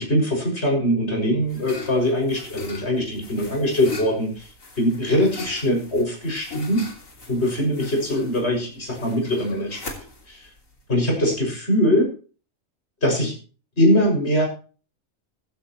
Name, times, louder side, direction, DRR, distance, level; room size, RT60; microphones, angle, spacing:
voice 1, 0.0-4.5 4.8-6.8 7.3-9.8 10.3-10.5 10.9-12.1 13.0-13.4 13.8-14.5, equal, 55° left, 0 dB, 6.7 m, -22 dB
sound 1, 0.9-11.5, left 4 dB, 80° left, 3.5 m, -40 dB
15.0 x 15.0 x 3.1 m, 0.37 s
omnidirectional pair, 1.4 m